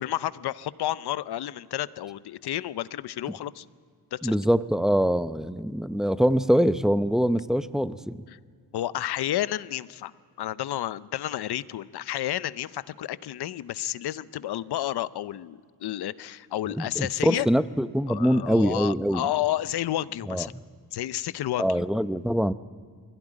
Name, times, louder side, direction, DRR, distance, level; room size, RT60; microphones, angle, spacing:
voice 1, 0.0-3.7 4.1-4.3 8.3-8.4 8.7-10.1 10.4-17.5 18.1-20.5 20.9-21.8, left 13 dB, 85° left, 17 dB, 0.7 m, -31 dB
voice 2, 4.2-8.2 16.8-19.2 20.3-20.5 21.6-22.5, equal, ahead, 13 dB, 0.7 m, -24 dB
21.0 x 17.0 x 9.9 m, 2.1 s
cardioid pair, 70°, 38 cm